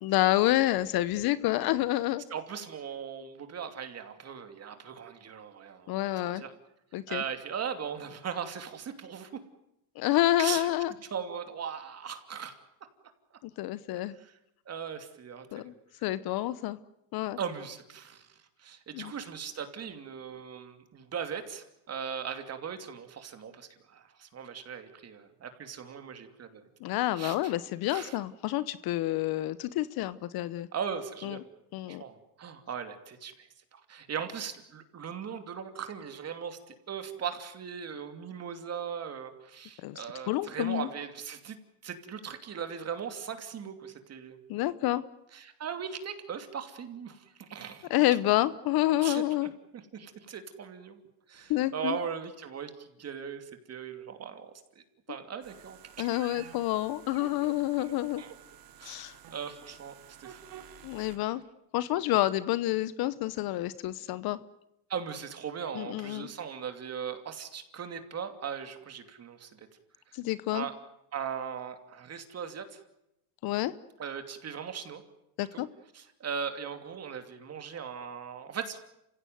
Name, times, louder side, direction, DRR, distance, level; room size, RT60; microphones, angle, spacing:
voice 1, 0.0-2.2 5.9-6.4 6.9-7.2 10.0-10.9 13.6-14.1 15.5-15.7 16.0-16.8 17.1-17.4 18.9-19.1 26.8-30.7 31.2-31.4 31.7-32.0 39.8-40.9 44.5-45.0 47.9-49.5 51.5-52.0 56.0-58.2 58.8-59.1 60.8-61.4 61.7-64.4 65.7-66.3 70.1-70.7 73.4-73.7 75.4-75.7, left 15 dB, 55° left, 16 dB, 1.0 m, -28 dB
voice 2, 2.3-6.5 7.1-9.4 10.4-10.7 11.1-12.5 14.2-14.3 14.7-15.7 17.4-18.3 18.6-26.6 27.2-27.5 27.9-28.2 30.7-31.4 31.9-33.3 33.7-44.4 45.3-47.9 49.0-49.2 49.7-51.0 51.3-54.5 54.8-56.5 57.4-57.5 57.8-58.3 58.8-59.9 60.2-60.4 64.9-69.7 70.5-70.7 71.1-72.8 74.0-75.0 75.5-75.6 75.9-78.8, right 7 dB, 35° right, 8 dB, 2.8 m, -39 dB
sound 1, 55.4-61.2, right 9 dB, 55° right, 3.2 m, -52 dB
28.0 x 16.5 x 9.4 m, 0.85 s
supercardioid pair, 110°, 42 cm